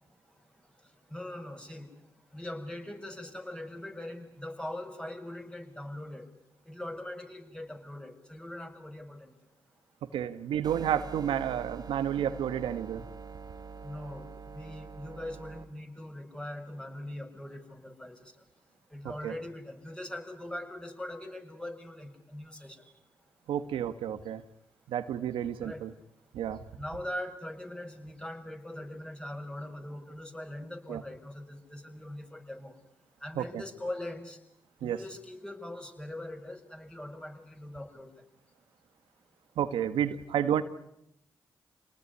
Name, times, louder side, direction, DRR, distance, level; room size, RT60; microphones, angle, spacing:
voice 1, 1.1-1.9 2.3-6.3 6.7-9.3 13.8-14.2 14.5-18.3 18.9-22.8 25.6-25.8 26.8-32.7 33.2-34.4 34.8-38.1, left 1 dB, 10° left, 4 dB, 7.0 m, -41 dB
voice 2, 10.1-13.0 19.2-19.3 23.5-24.4 24.9-25.9 26.3-26.6 30.9-31.0 33.3-33.6 34.8-35.0 39.6-40.6, right 9 dB, 90° right, 10 dB, 1.3 m, -30 dB
sound 1, 10.6-15.6, right 5 dB, 50° right, 2.8 m, -45 dB
28.0 x 19.5 x 9.7 m, 0.81 s
supercardioid pair, 50°, 9 cm